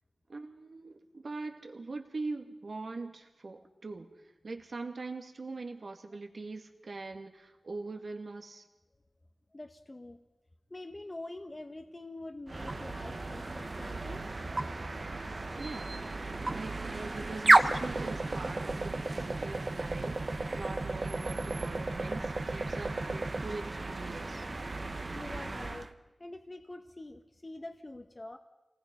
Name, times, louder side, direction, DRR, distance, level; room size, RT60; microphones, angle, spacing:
voice 1, 0.3-8.6 15.6-24.4, right 3 dB, 60° right, 4 dB, 2.2 m, -42 dB
voice 2, 9.5-10.2 10.7-14.3 25.1-25.9 26.2-28.4, left 2 dB, 25° left, 6 dB, 1.0 m, -45 dB
sound 1, 12.5-25.9, right 2 dB, 35° right, 1.1 m, -32 dB
28.0 x 19.5 x 5.4 m, 1.0 s
wide cardioid pair, 105°, 0 cm